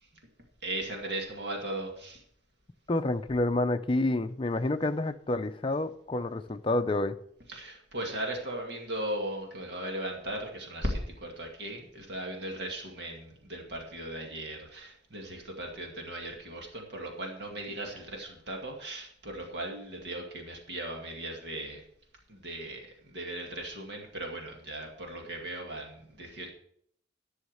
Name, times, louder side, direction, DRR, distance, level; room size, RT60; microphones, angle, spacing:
voice 1, 0.6-2.2 7.5-21.8 22.3-26.5, right 1 dB, 60° right, 2.3 m, -37 dB
voice 2, 2.9-7.2, left 2 dB, 30° left, 0.5 m, -28 dB
11.5 x 6.4 x 6.5 m
head